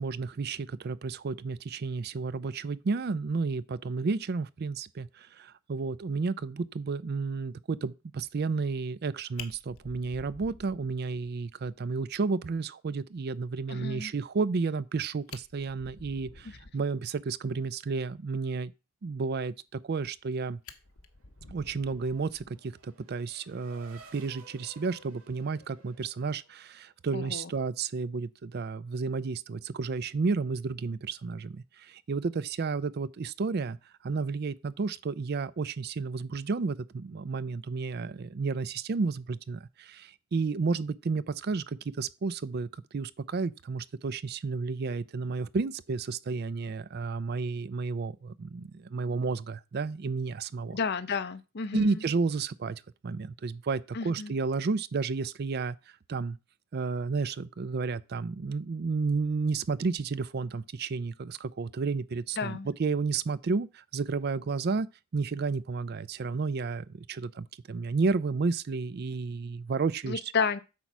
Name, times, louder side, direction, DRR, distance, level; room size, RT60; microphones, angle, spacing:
voice 1, 0.0-18.7 19.0-20.6 21.5-33.8 34.0-42.7 42.9-50.8 51.7-55.8 56.1-56.4 56.7-64.9 65.1-70.2, right 4 dB, 50° right, 0.4 m, -32 dB
Fire, 8.9-9.0 9.4-11.3 11.6-11.7 12.1-12.2 12.6-12.7 14.8-14.9 15.2-16.9 19.8-20.3 20.6-22.8 24.1-24.4, left 5 dB, 75° left, 1.1 m, -49 dB
voice 2, 13.7-14.1 27.1-27.5 50.7-52.0 53.9-54.3 62.4-62.7 70.0-70.6, left 5 dB, 50° left, 0.6 m, -32 dB
Race car auto racing / Accelerating revving vroom, 20.9-27.0, right 3 dB, 80° right, 2.0 m, -57 dB
8.4 x 4.6 x 6.0 m
head